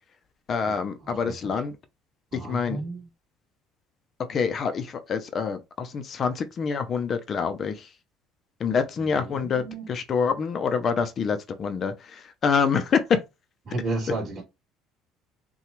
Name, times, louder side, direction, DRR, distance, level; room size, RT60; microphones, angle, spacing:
voice 1, 0.5-1.7 2.3-2.8 4.3-7.9 8.6-9.6 9.9-13.0, left 6 dB, 35° left, 0.6 m, -26 dB
voice 2, 1.0-1.6 2.3-3.1 9.2-9.9 13.7-14.4, right 2 dB, 30° right, 2.6 m, -33 dB
5.7 x 2.3 x 3.0 m
cardioid pair, 135°, 0 cm